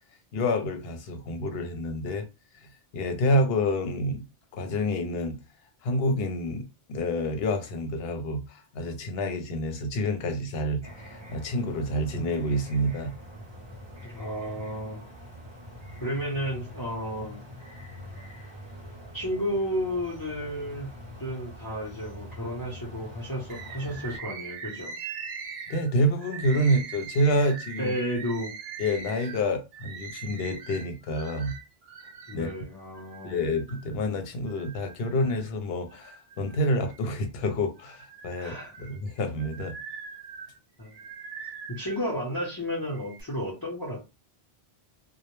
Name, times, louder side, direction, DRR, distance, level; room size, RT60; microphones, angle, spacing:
voice 1, 0.3-2.3 2.9-4.2 4.5-5.4 5.8-13.2 25.7-27.9 28.8-31.5 32.3-32.5 33.2-39.8, equal, 70° left, 0.8 m, -28 dB
sound 1, 10.8-24.2, equal, 30° right, 0.6 m, -44 dB
voice 2, 14.0-15.0 16.0-17.4 19.1-20.9 21.2-24.9 27.8-28.5 32.3-33.6 38.4-38.9 40.8-40.9 41.7-44.0, equal, 25° left, 0.6 m, -32 dB
Bird, 23.5-32.4 32.9-33.9 34.5-35.5 35.9-37.3 37.8-42.1 42.8-43.2, right 5 dB, 70° right, 0.8 m, -42 dB
2.2 x 2.0 x 3.0 m
omnidirectional pair, 1.1 m